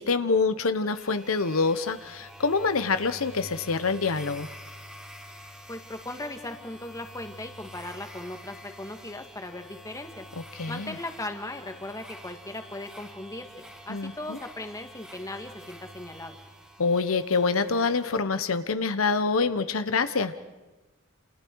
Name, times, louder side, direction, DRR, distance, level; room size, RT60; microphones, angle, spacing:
voice 1, 0.0-4.5 10.5-11.0 13.9-14.4 16.8-20.3, left 4 dB, 80° left, 11 dB, 1.0 m, -26 dB
sound 1, 0.9-18.2, equal, 5° right, 3.5 m, -47 dB
voice 2, 5.7-10.3 10.7-16.4, left 2 dB, 15° left, 5 dB, 1.9 m, -38 dB
29.0 x 28.5 x 4.7 m, 1.1 s
head